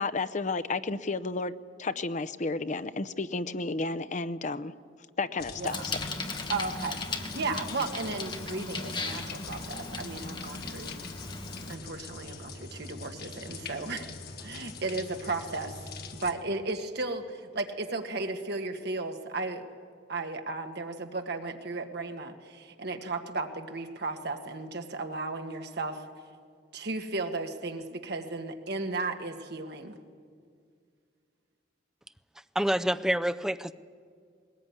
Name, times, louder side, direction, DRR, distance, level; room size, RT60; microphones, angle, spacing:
voice 1, 0.0-1.5 1.8-4.7 5.2-6.0, left 3 dB, 40° left, 12 dB, 0.7 m, -32 dB
sound 1, 5.4-16.3, left 4 dB, 55° left, 1.6 m, -43 dB
Bicycle, 5.6-11.7, left 3 dB, 25° left, 1.5 m, -37 dB
voice 2, 6.5-10.9 11.7-14.1 14.4-15.7 16.1-19.7 20.1-26.0 26.7-30.0, right 3 dB, 60° right, 5 dB, 1.8 m, -35 dB
voice 3, 32.5-33.7, equal, 5° right, 11 dB, 0.5 m, -27 dB
20.5 x 19.5 x 9.5 m, 2.2 s
head